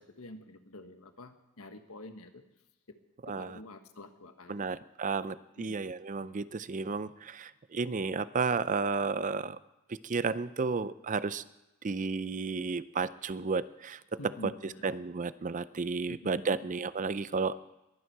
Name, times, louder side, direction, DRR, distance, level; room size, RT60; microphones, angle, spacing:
voice 1, 0.0-2.4 3.2-4.7 5.6-5.8 14.2-14.9 16.1-16.7, left 1 dB, 75° left, 7 dB, 1.4 m, -48 dB
voice 2, 3.2-3.6 4.5-9.6 10.0-11.4 11.8-14.5 14.8-17.5, right 4 dB, 35° right, 15 dB, 0.5 m, -32 dB
22.0 x 9.4 x 4.7 m, 0.96 s
head